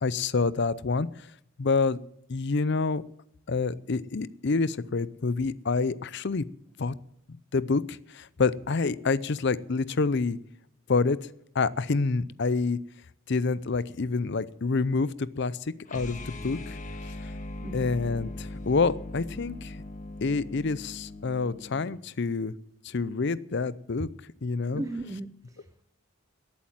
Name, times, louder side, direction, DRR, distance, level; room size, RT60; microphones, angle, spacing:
voice 1, 0.0-1.3 1.6-2.0 2.3-3.0 3.5-6.4 6.8-6.9 7.5-10.4 10.9-11.2 11.5-12.8 13.3-16.8 17.1-17.3 17.7-19.8 20.2-22.5 22.8-24.1 24.4-24.8, left 4 dB, 55° left, 18 dB, 0.6 m, -27 dB
sound 1, 15.8-21.9, left 2 dB, 35° left, 1.5 m, -40 dB
voice 2, 17.6-18.0 24.7-25.8, right 2 dB, 15° right, 11 dB, 0.5 m, -37 dB
18.0 x 8.7 x 7.4 m, 0.76 s
head